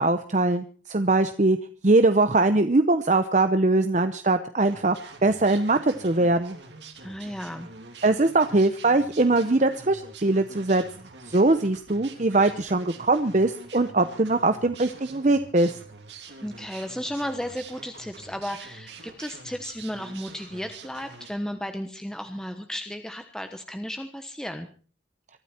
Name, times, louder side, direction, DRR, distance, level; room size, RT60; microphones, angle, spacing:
voice 1, 0.0-1.6 1.8-4.9 5.2-6.6 8.0-10.8 11.3-15.8, right 2 dB, 40° right, 9 dB, 0.8 m, -21 dB
sound 1, 4.6-21.3, right 4 dB, 75° right, 3.1 m, -46 dB
voice 2, 7.0-7.7 16.4-24.7, equal, 5° left, 6 dB, 1.1 m, -34 dB
23.5 x 13.0 x 4.4 m, 0.40 s
head